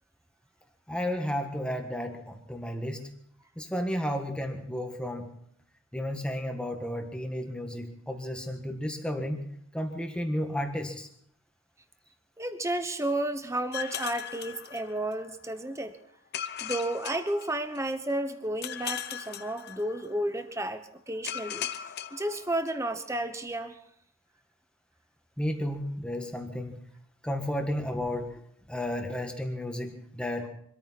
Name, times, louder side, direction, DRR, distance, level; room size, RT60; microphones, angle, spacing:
voice 1, 0.9-3.1 3.5-5.3 5.9-11.1 25.4-26.8 27.2-28.4 28.7-30.5, equal, 5° left, 4 dB, 1.6 m, -33 dB
voice 2, 12.4-16.0 16.6-21.7 22.1-23.8, right 1 dB, 15° right, 9 dB, 1.0 m, -32 dB
sound 1, 13.7-15.3 16.3-18.1 18.6-20.3 21.2-23.0, left 9 dB, 45° left, 0.8 m, -38 dB
25.0 x 14.0 x 4.2 m, 0.66 s
head